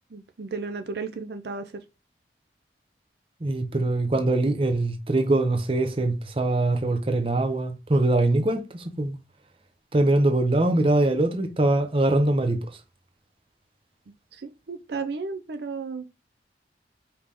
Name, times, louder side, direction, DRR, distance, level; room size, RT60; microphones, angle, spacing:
voice 1, 0.1-1.8 14.3-16.1, right 4 dB, 65° right, 0.5 m, -34 dB
voice 2, 3.4-9.2 9.9-12.7, right 2 dB, 30° right, 0.7 m, -23 dB
5.1 x 2.9 x 3.5 m
head